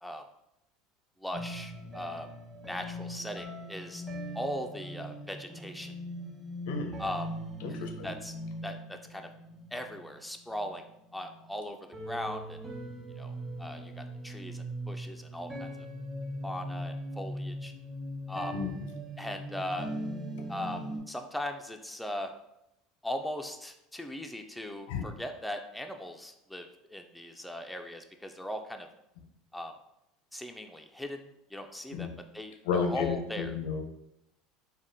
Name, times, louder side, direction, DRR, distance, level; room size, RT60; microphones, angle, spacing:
voice 1, 1.2-2.3 2.7-4.0 4.3-5.9 7.0-7.3 7.8-8.3 8.6-9.3 9.7-10.8 11.1-11.8 12.0-12.6 13.2-15.7 16.4-17.7 18.3-18.5 19.2-19.9 20.5-22.3 23.0-28.9 29.5-29.7 30.3-33.5, left 1 dB, 5° left, 5 dB, 0.3 m, -39 dB
sound 1, 1.3-11.6 11.9-21.0, equal, 20° right, 1.0 m, -40 dB
voice 2, 6.7-7.0 7.6-8.1 18.5-18.7 24.9-25.0 31.9-32.1 32.6-33.8, left 5 dB, 80° left, 3 dB, 0.5 m, -32 dB
3.4 x 2.1 x 2.6 m, 0.83 s
hypercardioid pair, 90°, 0 cm